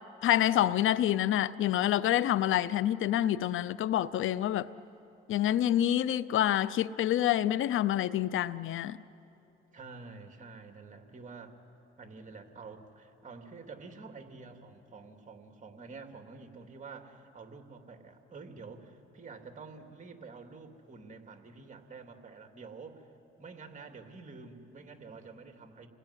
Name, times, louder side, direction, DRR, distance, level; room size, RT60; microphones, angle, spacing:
voice 1, 0.2-4.7 5.3-9.0, left 12 dB, 75° left, 0.6 m, -27 dB
voice 2, 9.7-11.6 12.0-23.1 23.4-25.9, right 4 dB, 35° right, 2.9 m, -48 dB
28.5 x 20.5 x 9.9 m
cardioid pair, 85°, 21 cm